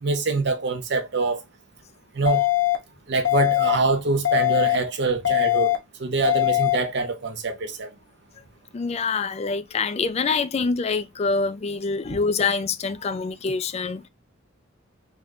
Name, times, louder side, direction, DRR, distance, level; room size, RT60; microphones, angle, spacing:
voice 1, 0.0-1.4 2.2-2.4 3.1-5.7 6.0-7.9, right 3 dB, 60° right, 0.7 m, -24 dB
sound 1, 2.3-2.8 3.3-3.8 4.3-4.8 5.3-5.8 6.3-6.8, left 17 dB, 75° left, 0.9 m, -21 dB
voice 2, 8.7-14.1, left 4 dB, 35° left, 0.4 m, -25 dB
3.6 x 2.4 x 3.1 m
head